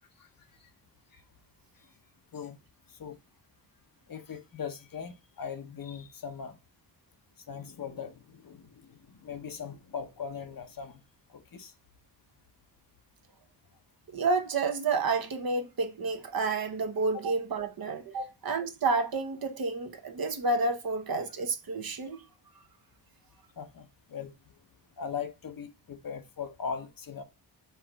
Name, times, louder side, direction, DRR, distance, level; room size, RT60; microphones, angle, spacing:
voice 1, 4.1-6.6 7.5-11.0 11.3-11.7 18.2-18.3 23.6-24.3 25.0-27.2, left 6 dB, 50° left, 0.8 m, -40 dB
voice 2, 14.1-22.2, right 3 dB, 55° right, 0.8 m, -30 dB
4.5 x 2.5 x 4.4 m
cardioid pair, 75°, 43 cm